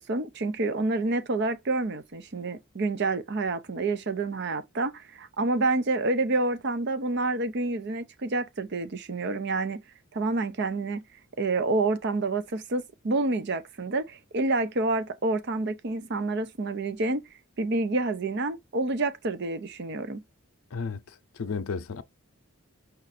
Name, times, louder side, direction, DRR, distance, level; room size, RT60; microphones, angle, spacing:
voice 1, 0.0-9.8 10.1-11.0 11.4-17.2 17.6-20.2, right 2 dB, 55° right, 0.6 m, -28 dB
voice 2, 20.7-22.0, left 5 dB, 75° left, 0.5 m, -33 dB
5.3 x 2.5 x 4.1 m
head